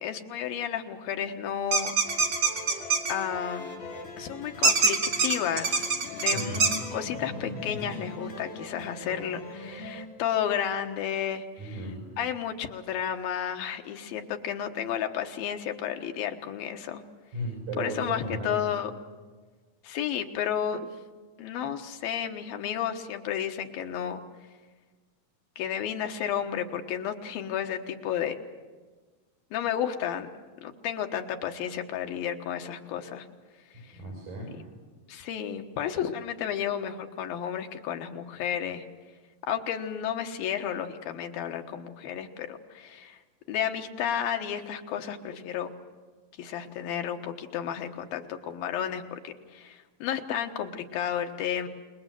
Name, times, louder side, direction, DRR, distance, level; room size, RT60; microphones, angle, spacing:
voice 1, 0.0-1.9 3.1-3.8 4.2-11.8 12.2-17.0 17.8-18.9 19.8-20.9 21.4-24.2 25.6-28.4 29.5-30.3 30.6-33.3 33.8-34.0 35.1-38.8 39.4-43.2 43.5-45.7 46.4-51.7, left 9 dB, 85° left, 5 dB, 3.2 m, -32 dB
sound 1, 1.7-3.1 4.6-6.8, right 4 dB, 35° right, 2.8 m, -24 dB
sound 2, 2.1-10.1, left 2 dB, 60° left, 5.6 m, -41 dB
voice 2, 6.1-6.7 11.6-12.0 17.3-18.6 33.9-34.6, right 1 dB, 75° right, 0 dB, 8.1 m, -35 dB
28.0 x 21.5 x 7.8 m, 1.4 s
omnidirectional pair, 4.1 m